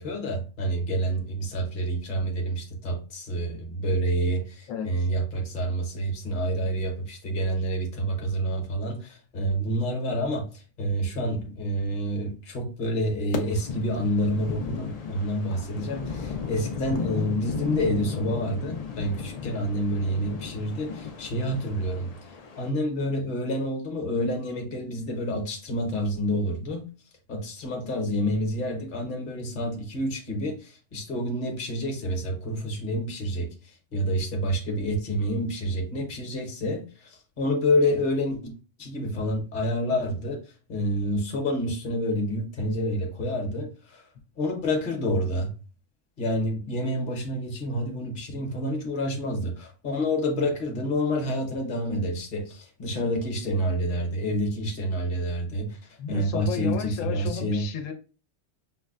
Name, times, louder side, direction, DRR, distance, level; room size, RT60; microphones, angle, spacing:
voice 1, 0.0-26.9 27.3-38.5 38.8-44.1 44.4-45.5 46.2-57.7, equal, 45° left, 1.0 m, -28 dB
voice 2, 4.7-5.1 56.0-57.9, left 7 dB, 90° left, 1.0 m, -33 dB
sound 1, 13.3-22.7, left 5 dB, 75° left, 0.3 m, -35 dB
5.8 x 2.1 x 2.4 m
omnidirectional pair, 1.3 m